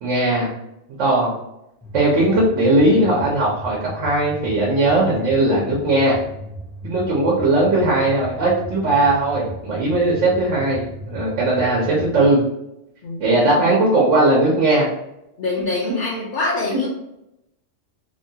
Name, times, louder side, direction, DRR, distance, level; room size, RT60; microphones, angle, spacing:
voice 1, 0.0-0.5 1.0-1.3 1.9-6.2 6.8-12.4 13.2-14.9 16.7-16.9, right 2 dB, 80° right, -4 dB, 1.1 m, -18 dB
sound 1, 1.8-12.3, right 1 dB, 5° left, 0.3 m, -36 dB
voice 2, 13.0-13.8 15.4-16.9, left 2 dB, 55° left, -4 dB, 0.6 m, -25 dB
2.9 x 2.2 x 2.7 m, 0.85 s
omnidirectional pair, 1.2 m